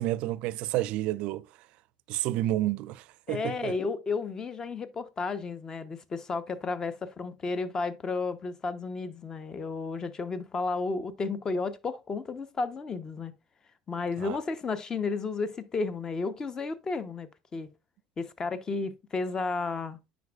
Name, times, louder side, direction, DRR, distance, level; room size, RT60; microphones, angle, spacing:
voice 1, 0.0-1.5 2.1-3.8 14.2-14.4, right 15 dB, 60° right, 0.4 m, -30 dB
voice 2, 3.3-13.3 13.9-17.7 18.2-20.0, left 4 dB, 30° left, 0.8 m, -32 dB
9.2 x 5.3 x 2.4 m
hypercardioid pair, 80°, 2 cm